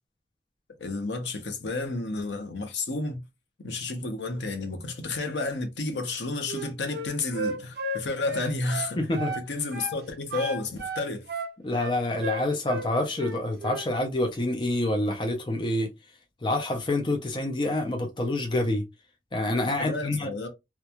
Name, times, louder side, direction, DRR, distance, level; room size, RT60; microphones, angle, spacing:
voice 1, 0.8-3.2 3.6-9.1 9.3-11.3 19.8-20.5, left 3 dB, 75° left, 0.7 m, -31 dB
Wind instrument woodwind instrument, 6.5-9.5 9.7-10.0 10.3-12.9 13.2-13.9, right 1 dB, 60° right, 0.5 m, -33 dB
voice 2, 9.0-9.4 11.6-15.9 16.4-18.8 19.3-20.3, left 1 dB, 25° left, 0.5 m, -27 dB
2.9 x 2.3 x 2.3 m
head